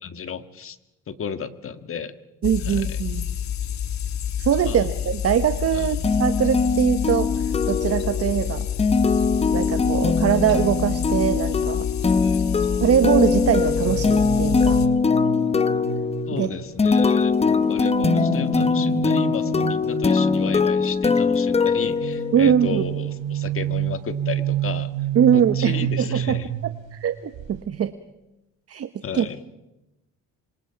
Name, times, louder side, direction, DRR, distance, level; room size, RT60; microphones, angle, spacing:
voice 1, 0.0-0.8 1.1-2.1 2.6-3.0 4.6-4.9 5.7-6.3 12.1-12.7 16.3-24.9 25.3-26.5 29.0-29.4, left 6 dB, 40° left, 11 dB, 1.7 m, -33 dB
sound 1, 2.4-14.9, left 9 dB, 60° left, 1.6 m, -28 dB
voice 2, 2.4-3.3 4.4-8.7 9.5-11.9 12.8-14.8 16.3-16.5 22.3-22.8 25.1-26.4 26.9-27.9 28.7-28.9 29.1-29.2, right 9 dB, 45° right, 10 dB, 1.1 m, -22 dB
sound 2, 6.0-22.7, left 5 dB, 20° left, 0.9 m, -22 dB
sound 3, 13.3-16.9 17.5-20.8 21.8-27.1 27.3-27.6, right 11 dB, 90° right, 4.1 m, -29 dB
26.5 x 24.5 x 5.8 m, 0.95 s
cardioid pair, 105°, 32 cm